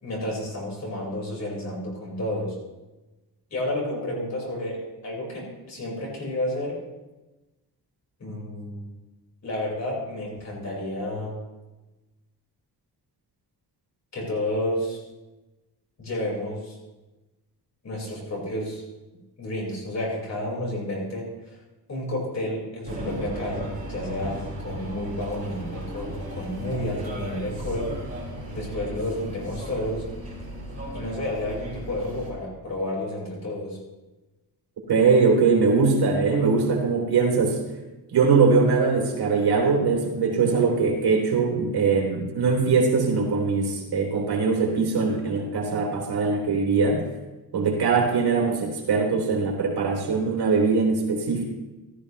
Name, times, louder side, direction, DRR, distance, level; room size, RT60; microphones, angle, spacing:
voice 1, 0.0-2.6 3.5-6.8 8.2-8.9 9.4-11.4 14.1-15.0 16.0-16.8 17.8-18.8 19.4-21.6 21.9-27.9 28.5-30.1 30.9-33.8, left 1 dB, 45° left, -3 dB, 5.1 m, -31 dB
sound 1, 22.8-32.3, equal, 20° right, 4.8 m, -36 dB
voice 2, 34.9-37.6 38.1-47.0 47.5-51.4, right 4 dB, 75° right, -1 dB, 3.2 m, -21 dB
15.0 x 14.0 x 3.2 m, 1.1 s
wide cardioid pair, 135°, 39 cm